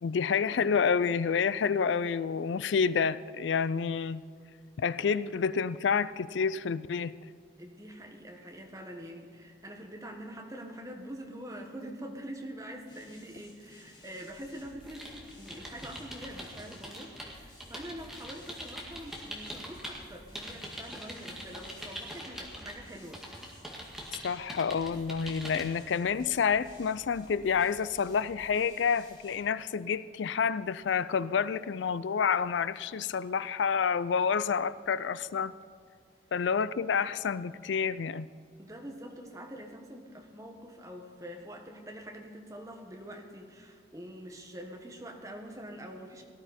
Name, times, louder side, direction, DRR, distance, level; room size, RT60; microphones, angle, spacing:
voice 1, 0.0-4.2 4.8-7.1 24.2-35.5 36.3-38.3, left 6 dB, 90° left, 0.4 m, -29 dB
voice 2, 7.6-23.2 38.6-46.2, equal, 20° right, 1.5 m, -45 dB
sound 1, 12.9-29.4, left 1 dB, 25° left, 3.8 m, -56 dB
sound 2, 14.8-20.0 20.4-22.7 23.1-25.7, equal, ahead, 1.9 m, -43 dB
18.0 x 12.5 x 4.3 m
head